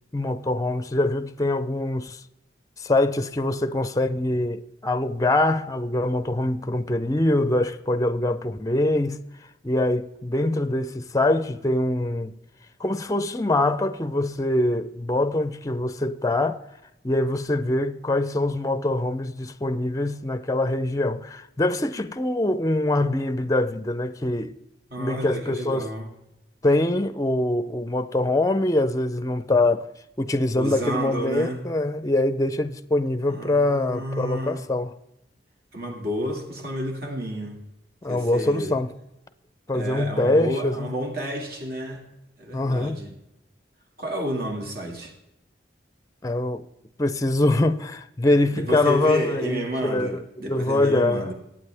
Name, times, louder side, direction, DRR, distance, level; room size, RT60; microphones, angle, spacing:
voice 1, 0.1-2.2 2.8-9.2 9.6-12.4 12.8-16.6 17.0-24.6 25.0-25.9 26.6-29.9 30.2-34.9 38.0-38.9 39.7-40.9 42.5-43.0 46.2-46.6 47.0-51.3, left 2 dB, 20° left, 0.5 m, -24 dB
voice 2, 24.9-26.1 30.6-31.6 33.3-34.6 35.7-37.6 38.1-38.7 39.7-42.0 42.4-43.1 44.0-45.2 48.5-51.3, equal, 60° right, 2.2 m, -30 dB
23.5 x 8.9 x 3.4 m
head